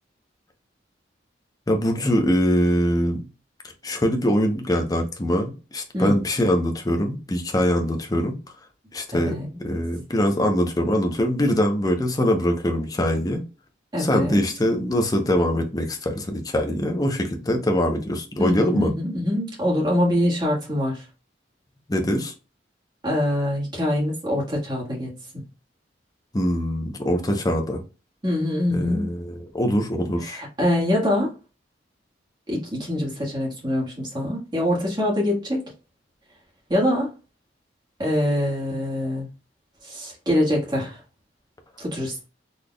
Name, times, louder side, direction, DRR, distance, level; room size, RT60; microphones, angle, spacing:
voice 1, 1.7-3.2 3.8-8.4 8.9-13.4 14.0-18.9 21.9-22.3 26.3-27.8 28.7-30.4, equal, 20° left, 0.6 m, -23 dB
voice 2, 9.1-9.5 13.9-14.4 18.4-21.0 23.0-25.1 28.2-29.1 30.2-31.3 32.5-35.7 36.7-37.1 38.0-39.3 39.8-41.0 41.8-42.2, left 1 dB, 25° right, 1.5 m, -24 dB
4.0 x 3.3 x 2.2 m
head